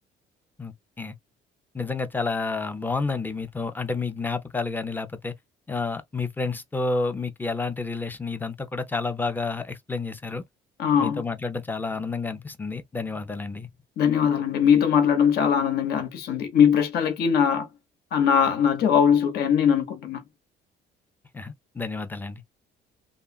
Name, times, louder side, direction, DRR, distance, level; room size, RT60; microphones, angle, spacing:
voice 1, 0.6-1.2 1.7-5.3 5.7-10.4 11.0-13.7 21.3-22.4, left 3 dB, 10° left, 0.5 m, -30 dB
voice 2, 10.8-11.2 14.0-17.7 18.1-20.2, left 8 dB, 70° left, 0.9 m, -21 dB
3.0 x 2.2 x 2.3 m
cardioid pair, 110°, 17 cm